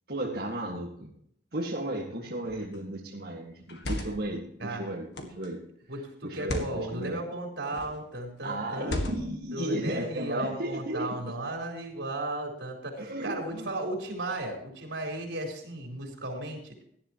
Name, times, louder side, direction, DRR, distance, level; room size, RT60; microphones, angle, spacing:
voice 1, 0.1-1.1 1.5-5.6 6.2-7.2 8.4-11.3 13.0-13.7, right 1 dB, 55° right, -3 dB, 1.9 m, -34 dB
sound 1, 2.4-2.8 3.6-4.3 5.1-5.5 6.3-6.8 7.7-8.0 8.8-9.4, left 1 dB, 70° left, 1.9 m, -35 dB
voice 2, 4.6-4.9 5.9-9.2 9.5-16.8, right 2 dB, 80° right, 1 dB, 4.3 m, -35 dB
17.5 x 11.5 x 3.1 m, 0.68 s
head